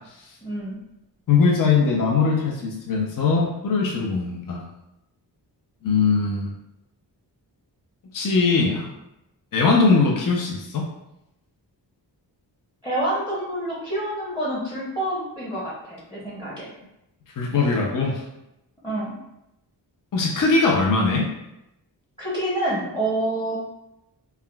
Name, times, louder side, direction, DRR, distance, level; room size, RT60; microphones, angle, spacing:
voice 1, 0.4-0.8 12.8-16.7 18.8-19.1 22.2-23.6, right 1 dB, 15° left, -8 dB, 0.9 m, -27 dB
voice 2, 1.3-4.7 5.8-6.5 8.1-8.9 9.5-10.8 17.4-18.2 20.1-21.3, left 4 dB, 50° left, -1 dB, 0.6 m, -20 dB
3.5 x 2.2 x 2.2 m, 0.88 s
wide cardioid pair, 80°, 42 cm